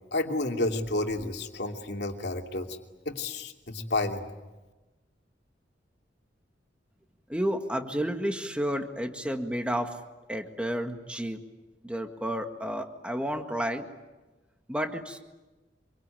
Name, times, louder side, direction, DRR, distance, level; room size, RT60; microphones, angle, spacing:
voice 1, 0.1-2.8 3.0-4.2, left 2 dB, 65° left, 2 dB, 2.7 m, -30 dB
voice 2, 7.3-10.0 10.3-11.4 11.8-13.8 14.7-15.2, equal, 5° right, 5 dB, 1.8 m, -31 dB
26.5 x 24.0 x 9.1 m, 1.1 s
head